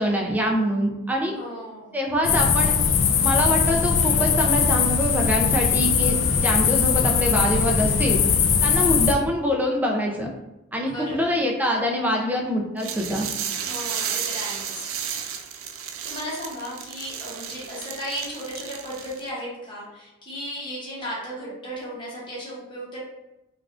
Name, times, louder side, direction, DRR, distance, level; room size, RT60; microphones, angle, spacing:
voice 1, 0.0-1.3 1.9-2.7 3.2-8.2 8.6-10.3 10.7-13.3, equal, 10° right, 0 dB, 0.4 m, -24 dB
voice 2, 1.3-1.9 10.8-11.4 13.6-14.9 16.0-23.0, equal, 25° left, -7 dB, 0.9 m, -35 dB
tata hungary near the coast of lake cseke, 2.2-9.1, left 6 dB, 70° left, 0.3 m, -20 dB
sound 1, 12.8-19.3, right 8 dB, 80° right, 0.3 m, -33 dB
3.4 x 2.4 x 2.4 m, 0.97 s
head